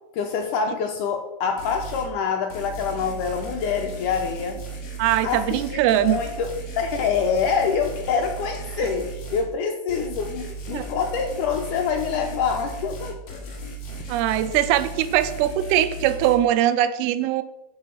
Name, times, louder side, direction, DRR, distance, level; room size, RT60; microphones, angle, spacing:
voice 1, 0.1-4.7 5.2-13.4, left 6 dB, 75° left, 4 dB, 2.0 m, -26 dB
sound 1, 1.6-2.1 2.5-9.5 9.9-16.4, right 3 dB, 50° left, 2.5 m, -36 dB
voice 2, 5.0-6.2 8.8-8.9 10.7-10.9 14.1-17.4, right 12 dB, 85° right, 13 dB, 2.6 m, -21 dB
12.5 x 5.3 x 5.7 m, 0.99 s
omnidirectional pair, 4.4 m